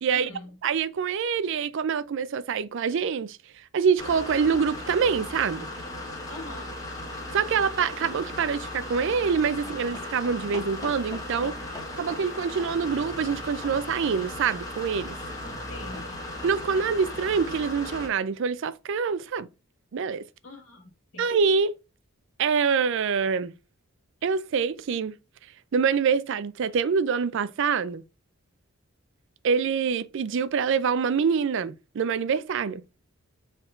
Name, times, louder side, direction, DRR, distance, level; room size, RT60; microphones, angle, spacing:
voice 1, 0.1-0.6 6.3-6.7 15.7-16.2 20.4-21.3, left 2 dB, 65° left, 1.5 m, -43 dB
voice 2, 0.6-5.7 7.3-11.6 12.0-15.2 16.4-19.5 19.9-20.3 21.2-21.8 22.4-23.5 24.2-25.1 25.7-28.0 29.4-32.8, right 6 dB, 60° right, 0.4 m, -25 dB
sound 1, 4.0-18.1, left 1 dB, 15° left, 1.2 m, -37 dB
5.4 x 3.6 x 2.4 m
head